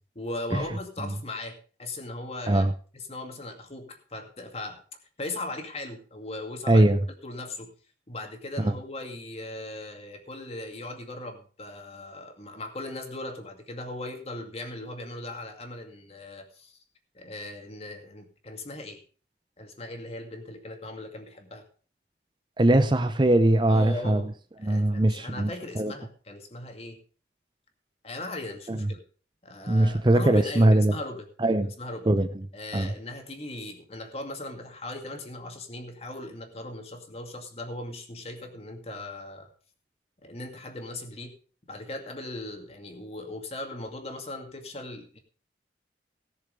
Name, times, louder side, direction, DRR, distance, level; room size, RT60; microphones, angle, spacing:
voice 1, 0.2-2.6 2.9-4.8 5.2-6.9 7.2-7.7 8.1-16.8 17.1-19.0 19.6-21.6 23.7-24.3 24.6-27.0 28.0-29.0 29.4-31.3 31.8-32.1 32.5-39.5 40.2-41.3 41.7-45.2, left 2 dB, 35° left, 2.3 m, -38 dB
voice 2, 6.7-7.0 8.6-8.7 22.6-24.2 24.6-25.5 25.8-25.9 28.7-28.9 29.7-30.9 31.4-31.7 32.1-32.3 32.7-32.9, right 1 dB, 25° right, 0.6 m, -21 dB
17.5 x 6.8 x 5.2 m
head